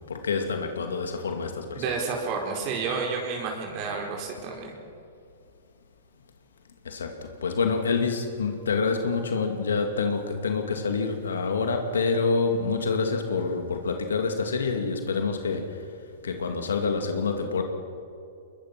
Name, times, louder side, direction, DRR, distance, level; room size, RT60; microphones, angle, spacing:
voice 1, 0.1-1.8 6.8-15.8 16.2-17.6, left 4 dB, 90° left, 5 dB, 2.3 m, -27 dB
voice 2, 1.8-4.7, right 5 dB, 45° right, 0 dB, 4.4 m, -30 dB
22.0 x 22.0 x 6.1 m, 2.5 s
hypercardioid pair, 125°, 0 cm